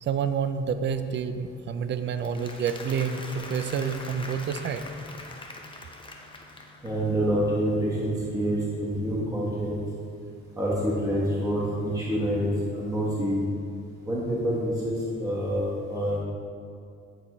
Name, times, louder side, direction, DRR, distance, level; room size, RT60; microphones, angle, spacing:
voice 1, 0.0-4.8, right 6 dB, 40° right, 10 dB, 0.4 m, -28 dB
Applause, 2.1-7.1, left 2 dB, 15° left, 0.6 m, -43 dB
voice 2, 6.8-9.8 10.6-13.5 14.1-16.2, equal, 10° right, -6 dB, 1.2 m, -27 dB
8.5 x 4.0 x 3.0 m, 2.4 s
cardioid pair, 90°, 30 cm